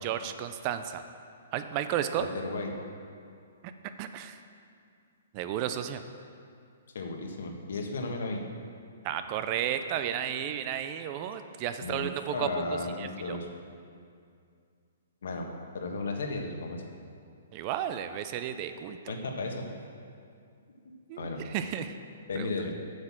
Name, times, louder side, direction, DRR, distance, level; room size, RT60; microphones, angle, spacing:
voice 1, 0.0-1.0 1.5-2.3 4.0-4.4 5.3-6.0 9.0-12.5 13.0-13.4 17.5-19.1 21.1-22.0 22.3-22.5, right 10 dB, 25° right, 9 dB, 0.4 m, -33 dB
voice 2, 2.2-2.7 6.9-8.4 11.8-13.5 15.2-15.5 15.7-16.8 19.1-19.7 20.8-21.4 22.3-22.7, left 3 dB, 70° left, 2 dB, 1.4 m, -34 dB
8.0 x 6.6 x 7.4 m, 2.4 s
hypercardioid pair, 170°, 0 cm